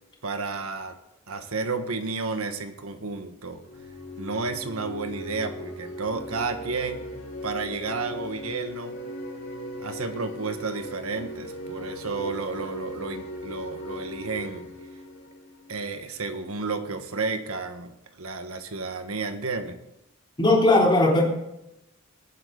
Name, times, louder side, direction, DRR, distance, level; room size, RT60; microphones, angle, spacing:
voice 1, 0.2-1.0 1.3-3.6 4.2-7.0 7.4-9.0 9.8-14.7 15.7-19.8, right 4 dB, 80° right, 7 dB, 1.4 m, -32 dB
sound 1, 3.5-16.2, equal, 70° left, 5.2 m, -38 dB
voice 2, 20.4-21.2, left 2 dB, 20° left, -2 dB, 3.4 m, -18 dB
22.0 x 9.6 x 3.9 m, 0.87 s
head